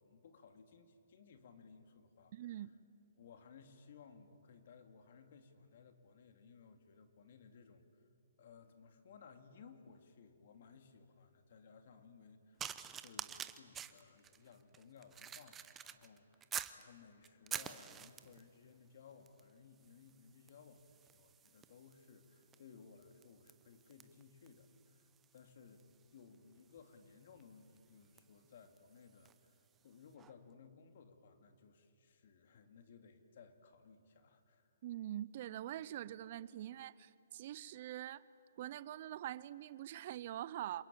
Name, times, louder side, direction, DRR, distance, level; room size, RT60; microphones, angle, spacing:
voice 1, 0.0-2.6 3.2-7.8 8.4-25.9 26.1-34.7, left 5 dB, 60° left, 7 dB, 2.6 m, -60 dB
voice 2, 2.3-2.7 34.8-38.2 38.6-40.8, right 12 dB, 45° right, 19 dB, 0.6 m, -44 dB
sound 1, 12.6-16.8 17.2-18.5 19.3-19.5 19.8-29.5 30.2-30.3, right 8 dB, 15° right, 0.9 m, -49 dB
27.0 x 22.0 x 9.0 m, 2.5 s
hypercardioid pair, 140°, 0 cm